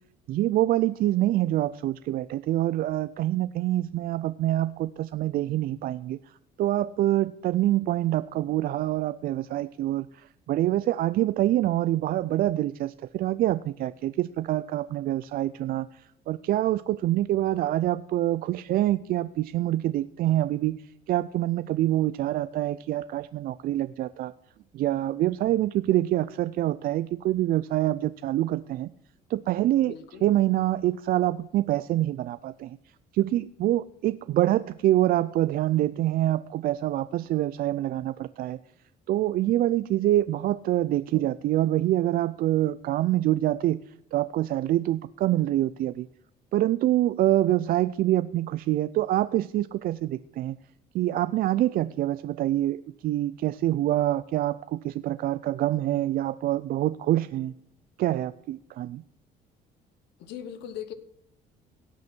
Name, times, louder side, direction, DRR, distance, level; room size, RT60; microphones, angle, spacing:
voice 1, 0.3-6.2 6.6-20.8 21.1-24.3 24.7-28.9 29.3-32.8 33.1-38.6 39.1-43.8 44.1-46.1 46.5-50.6 50.9-57.5 58.0-59.0, right 14 dB, 60° right, 14 dB, 0.4 m, -26 dB
voice 2, 29.8-30.2 60.2-60.9, left 9 dB, 80° left, 11 dB, 1.2 m, -39 dB
18.0 x 6.1 x 4.5 m, 0.77 s
cardioid pair, 110°, 17 cm